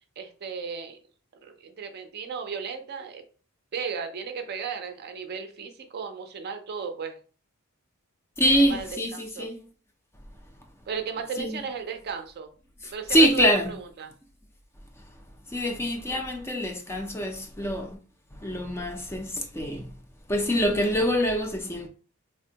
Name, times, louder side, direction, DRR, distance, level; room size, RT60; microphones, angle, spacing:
voice 1, 0.2-1.0 1.4-3.2 3.7-7.2 8.6-9.5 10.9-12.5 12.8-14.1 16.1-16.2, right 6 dB, 45° right, 0.4 m, -35 dB
voice 2, 8.4-9.6 11.4-11.6 12.8-13.7 15.5-18.0 18.4-19.9 20.3-21.9, equal, 10° left, 0.4 m, -25 dB
3.3 x 2.1 x 2.7 m
head